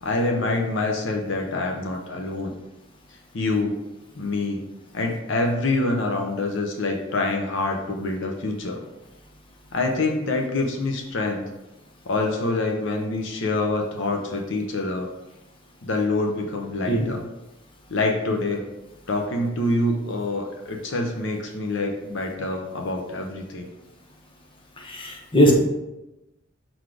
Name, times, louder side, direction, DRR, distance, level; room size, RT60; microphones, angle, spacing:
voice 1, 0.0-2.5 3.1-3.8 4.2-4.7 4.9-8.8 9.7-11.5 12.0-15.1 15.8-17.2 17.9-18.7 19.1-23.7, left 2 dB, 65° left, 2 dB, 0.8 m, -26 dB
voice 2, 24.8-25.5, equal, 25° left, 0 dB, 1.1 m, -20 dB
6.2 x 4.1 x 4.8 m, 0.97 s
head